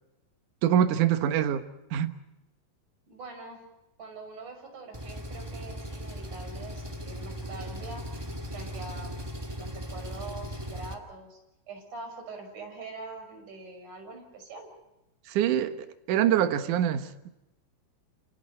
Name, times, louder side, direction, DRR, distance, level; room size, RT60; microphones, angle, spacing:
voice 1, 0.6-1.7 1.9-2.2 15.3-17.3, right 10 dB, 65° right, 8 dB, 2.2 m, -25 dB
voice 2, 3.1-3.6 4.0-8.0 8.5-9.2 9.6-11.4 11.7-14.7, right 3 dB, 45° right, 4 dB, 7.3 m, -43 dB
Engine, 4.9-10.9, equal, 25° right, 0.5 m, -38 dB
29.0 x 28.5 x 4.4 m, 0.93 s
omnidirectional pair, 5.0 m